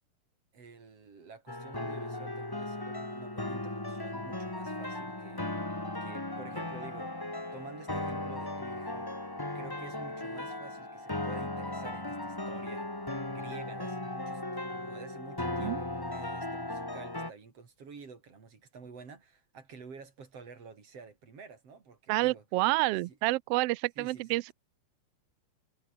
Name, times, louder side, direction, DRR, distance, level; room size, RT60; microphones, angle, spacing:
voice 1, 0.5-5.5 6.0-7.1 7.5-9.1 9.5-13.0 13.3-22.4 23.1-23.2 24.0-24.3, right 5 dB, 55° right, 4.9 m, -50 dB
sound 1, 1.5-17.3, left 1 dB, 10° left, 1.5 m, -37 dB
voice 2, 22.1-24.5, right 20 dB, 85° right, 1.4 m, -29 dB
omnidirectional pair, 3.3 m